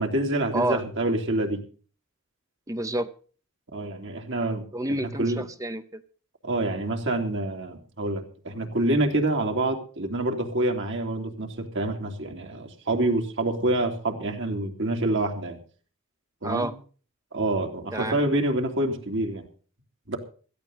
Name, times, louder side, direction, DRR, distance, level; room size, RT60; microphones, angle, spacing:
voice 1, 0.0-1.6 3.7-4.6 5.2-5.5 6.4-15.6 16.4-16.7 17.3-19.4 20.1-20.2, right 1 dB, 60° right, 3 dB, 2.9 m, -27 dB
voice 2, 0.5-0.8 2.7-3.1 4.7-6.0 16.4-16.7 17.9-18.2, right 1 dB, 15° right, 10 dB, 0.7 m, -29 dB
16.5 x 13.5 x 4.0 m, 0.39 s
head